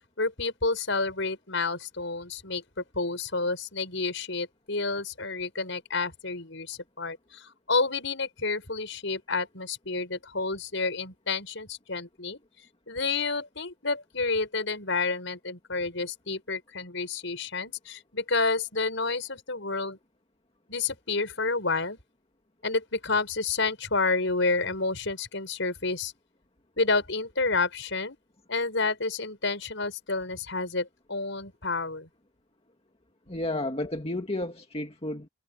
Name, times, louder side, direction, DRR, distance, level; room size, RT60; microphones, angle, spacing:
voice 1, 0.2-2.6 2.9-12.4 12.9-20.0 20.7-22.0 22.6-26.1 26.8-28.2 28.5-32.1, left 3 dB, 65° left, 7.3 m, -29 dB
voice 2, 33.3-35.3, left 1 dB, 30° left, 2.1 m, -32 dB
head